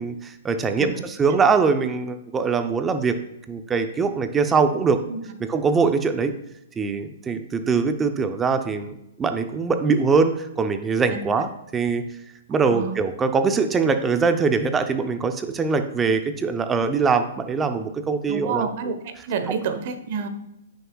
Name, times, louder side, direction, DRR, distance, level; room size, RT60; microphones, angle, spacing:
voice 1, 0.0-3.1 3.5-5.0 5.4-6.3 6.8-12.0 12.5-19.0, right 5 dB, 15° right, 8 dB, 0.6 m, -22 dB
voice 2, 12.6-13.0 18.3-20.3, right 6 dB, 50° right, 9 dB, 1.0 m, -29 dB
9.2 x 6.6 x 2.3 m, 0.86 s
hypercardioid pair, 135°, 0 cm